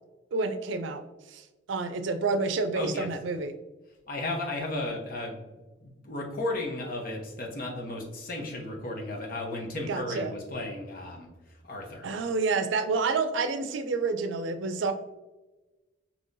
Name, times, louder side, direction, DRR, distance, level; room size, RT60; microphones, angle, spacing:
voice 1, 0.3-1.0 1.3-1.4 1.7-3.5 9.9-10.3 12.0-14.9, right 4 dB, 80° right, 9 dB, 0.4 m, -28 dB
voice 2, 2.7-3.1 4.1-5.4 5.8-11.3 11.6-12.1, left 2 dB, 50° left, 0 dB, 0.9 m, -34 dB
5.4 x 2.9 x 2.6 m, 1.1 s
head